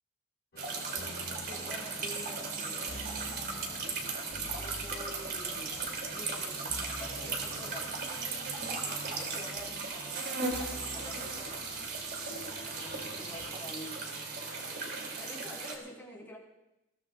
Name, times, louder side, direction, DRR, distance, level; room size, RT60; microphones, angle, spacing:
sound 1, 0.5-13.5, left 1 dB, 50° left, 1.5 m, -49 dB
sound 2, 0.6-15.8, right 4 dB, 50° right, 3.0 m, -37 dB
voice 1, 0.7-3.1 4.6-5.8 6.1-7.9 8.8-11.6 12.4-14.1 15.1-16.4, left 1 dB, 10° left, -3 dB, 4.1 m, -49 dB
22.0 x 17.0 x 2.5 m, 0.90 s
head